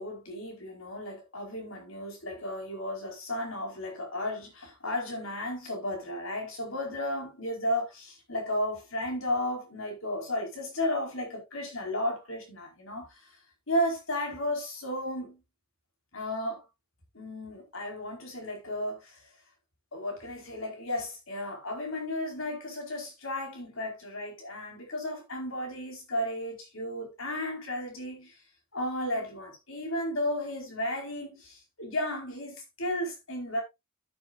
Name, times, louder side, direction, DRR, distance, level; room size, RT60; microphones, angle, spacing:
voice 1, 0.0-13.3 13.7-15.4 16.1-16.6 17.1-19.2 19.9-28.4 28.7-33.6, left 1 dB, 75° left, 4.6 m, -34 dB
13.0 x 7.7 x 2.5 m
head